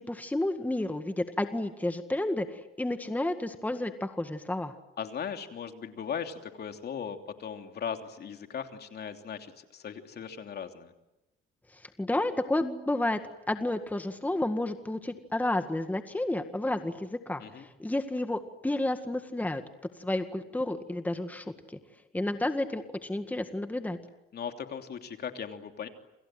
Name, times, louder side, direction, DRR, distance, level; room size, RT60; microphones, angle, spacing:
voice 1, 0.0-4.7 11.7-13.2 13.5-19.6 20.0-21.8 22.1-24.0, left 1 dB, 10° left, 8 dB, 1.8 m, -31 dB
voice 2, 5.0-10.9 17.4-17.7 24.3-25.9, left 7 dB, 55° left, 5 dB, 3.1 m, -38 dB
29.0 x 27.0 x 7.7 m, 0.93 s
cardioid pair, 110°, 20 cm